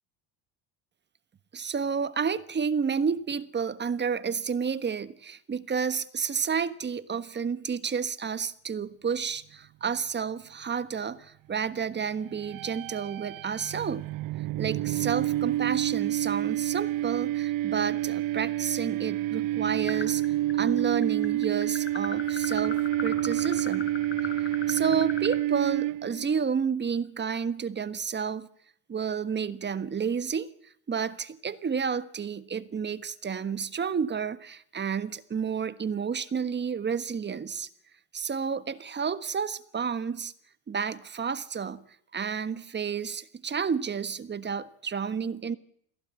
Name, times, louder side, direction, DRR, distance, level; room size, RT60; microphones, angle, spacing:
voice 1, 1.5-14.1 14.6-20.2 20.5-23.9 24.2-28.5 28.9-37.7 38.1-40.3 40.7-41.8 42.1-45.6, right 6 dB, 25° right, 1.4 m, -31 dB
sound 1, 12.3-26.4, right 15 dB, 50° right, 0.8 m, -29 dB
sound 2, 19.9-20.5 20.8-25.4, left 5 dB, 25° left, 4.3 m, -37 dB
22.0 x 16.5 x 8.3 m
supercardioid pair, 105°, 42 cm